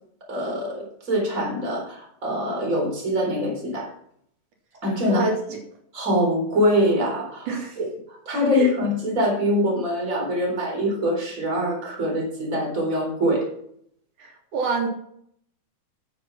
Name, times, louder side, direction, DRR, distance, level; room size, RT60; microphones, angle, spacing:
voice 1, 0.3-3.9 4.8-5.3 5.9-7.9 8.3-13.5, equal, 25° right, -1 dB, 4.3 m, -24 dB
voice 2, 5.1-5.6 7.5-7.8 8.5-8.7 14.2-14.9, right 3 dB, 85° right, 0 dB, 3.8 m, -27 dB
12.0 x 7.1 x 5.9 m, 0.68 s
omnidirectional pair, 3.4 m